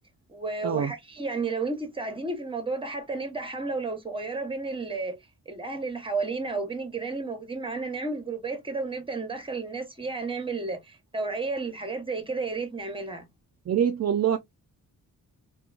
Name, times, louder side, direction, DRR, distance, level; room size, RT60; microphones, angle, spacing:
voice 1, 0.3-5.2 5.5-13.3, right 3 dB, 15° right, 0.9 m, -32 dB
voice 2, 13.7-14.4, right 9 dB, 50° right, 0.4 m, -24 dB
3.7 x 2.2 x 2.3 m
wide cardioid pair, 125°, 35 cm